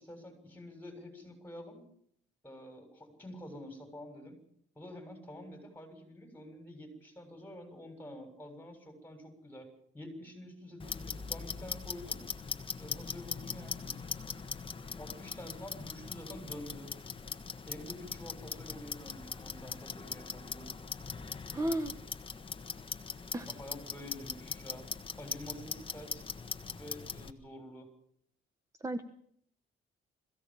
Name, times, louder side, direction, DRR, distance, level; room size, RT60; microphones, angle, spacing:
voice 1, 0.0-1.8 2.4-4.4 4.7-9.7 9.9-12.2 12.8-13.9 14.9-16.9 17.6-20.7 23.3-24.9 25.2-26.3 26.8-27.9, left 1 dB, 10° left, 6 dB, 6.9 m, -48 dB
Clock, 10.8-27.3, left 5 dB, 25° left, 1.5 m, -41 dB
voice 2, 21.5-22.0 23.3-23.5 28.8-29.0, right 1 dB, 15° right, 10 dB, 1.2 m, -33 dB
21.5 x 16.0 x 7.5 m, 0.67 s
cardioid pair, 120°, 20 cm